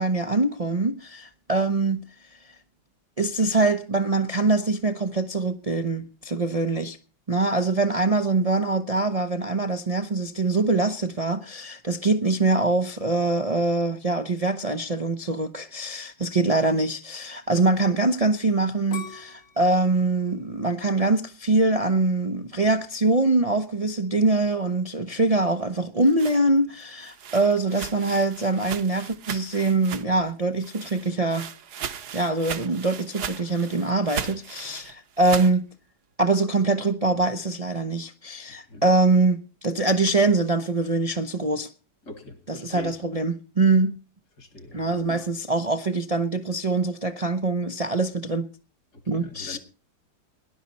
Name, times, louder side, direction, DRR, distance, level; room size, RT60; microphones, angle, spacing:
voice 1, 0.0-2.1 3.2-7.0 7.3-31.5 32.1-35.7 36.2-41.7 42.5-44.0 44.7-48.5 49.1-49.6, right 2 dB, 50° right, 0.4 m, -23 dB
sound 1, 18.9-21.8 22.3-22.8, left 5 dB, 90° left, 2.7 m, -43 dB
sound 2, 25.8-30.3 30.6-35.6, right 8 dB, 65° right, 1.5 m, -37 dB
voice 2, 42.1-42.9 44.4-45.2 49.1-49.6, left 2 dB, 65° left, 2.5 m, -42 dB
18.0 x 11.5 x 4.1 m
omnidirectional pair, 2.0 m